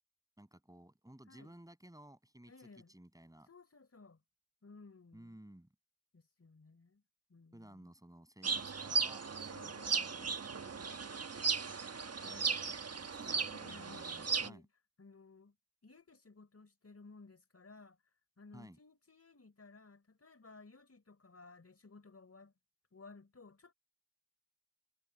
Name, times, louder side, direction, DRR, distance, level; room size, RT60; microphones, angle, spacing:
voice 1, 0.4-3.5 5.1-5.7 7.5-10.4 13.6-14.7 18.5-18.8, right 1 dB, 10° right, 7.9 m, -56 dB
voice 2, 2.5-2.9 3.5-4.2 4.6-5.4 6.1-7.0 7.3-7.9 9.5-10.0 10.6-11.0 12.2-12.7 13.0-14.7 15.0-15.5 15.8-18.0 18.4-22.5 22.9-23.7, left 3 dB, 45° left, 4.8 m, -58 dB
sound 1, 8.4-14.5, right 5 dB, 45° right, 1.3 m, -36 dB
cardioid pair, 55°, 35 cm